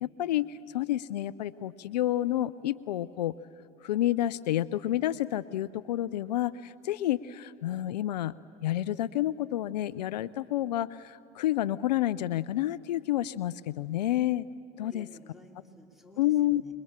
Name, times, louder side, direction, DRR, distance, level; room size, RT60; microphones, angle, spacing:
voice 1, 0.0-3.3 3.8-8.3 8.6-14.5 14.8-15.1 16.2-16.6, left 13 dB, 90° left, 18 dB, 0.5 m, -29 dB
voice 2, 14.8-16.7, left 2 dB, ahead, 2 dB, 3.6 m, -53 dB
27.0 x 22.5 x 7.4 m, 2.6 s
hypercardioid pair, 80°, 21 cm